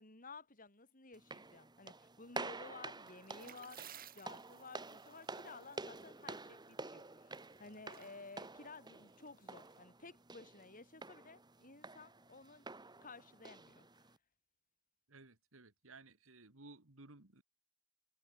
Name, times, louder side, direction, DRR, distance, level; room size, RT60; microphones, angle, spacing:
voice 1, 0.0-3.8 4.1-12.7 13.0-14.0, left 3 dB, 40° left, 4.6 m, -55 dB
sound 1, 1.1-14.2, right 3 dB, 20° right, 1.7 m, -50 dB
sound 2, 2.7-9.8, right 9 dB, 40° right, 2.8 m, -60 dB
voice 2, 15.1-17.4, right 3 dB, 65° right, 2.1 m, -58 dB
head